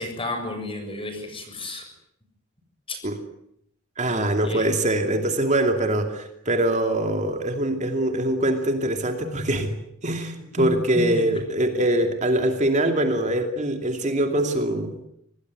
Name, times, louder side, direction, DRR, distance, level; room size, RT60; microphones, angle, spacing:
voice 1, 0.0-1.8 2.9-3.0 4.1-4.7 10.6-10.7 10.9-11.0, left 2 dB, 25° left, 6 dB, 7.1 m, -32 dB
voice 2, 4.0-9.7 10.0-15.0, right 1 dB, 35° right, 5 dB, 2.7 m, -23 dB
26.0 x 19.5 x 9.6 m, 0.73 s
head